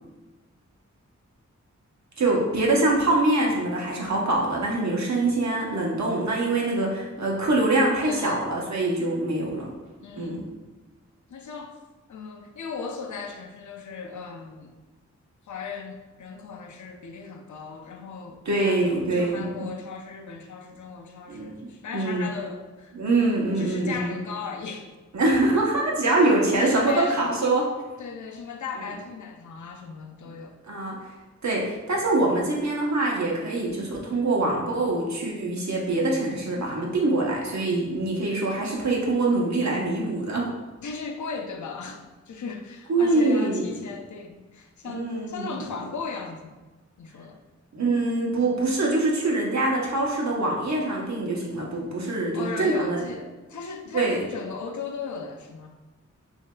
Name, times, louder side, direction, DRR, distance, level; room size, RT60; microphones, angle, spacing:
voice 1, 2.2-9.7 10.2-10.4 18.4-19.5 21.3-21.5 21.9-22.3 22.9-24.1 25.1-27.7 30.7-31.0 31.4-40.5 42.9-43.8 44.8-45.6 47.7-53.0 53.9-54.2, right 2 dB, 70° right, -2 dB, 0.9 m, -24 dB
voice 2, 8.0-8.5 10.0-10.5 11.3-11.8 12.1-14.7 15.5-23.0 23.6-24.9 26.6-27.3 28.0-30.6 40.8-46.6 47.0-47.4 52.3-55.7, left 5 dB, 80° left, 3 dB, 0.5 m, -37 dB
6.3 x 2.7 x 2.2 m, 1.2 s
wide cardioid pair, 95°, 29 cm